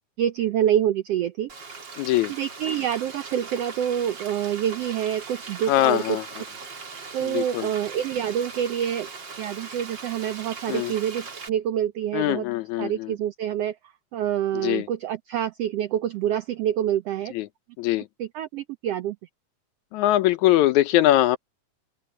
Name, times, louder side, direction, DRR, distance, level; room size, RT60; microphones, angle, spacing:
voice 1, 0.2-1.5 2.3-6.2 7.1-9.1 9.4-12.5 12.8-13.8 14.1-17.3 18.2-19.2, right 10 dB, 85° right, 1.3 m, -26 dB
Frying (food), 1.5-11.5, right 4 dB, 35° right, 2.7 m, -40 dB
voice 2, 2.0-2.3 5.7-6.2 7.2-7.7 10.7-10.9 12.1-13.1 14.6-14.9 17.4-17.5 17.8-18.1 19.9-21.4, left 14 dB, 75° left, 1.9 m, -22 dB
open air
omnidirectional pair, 3.7 m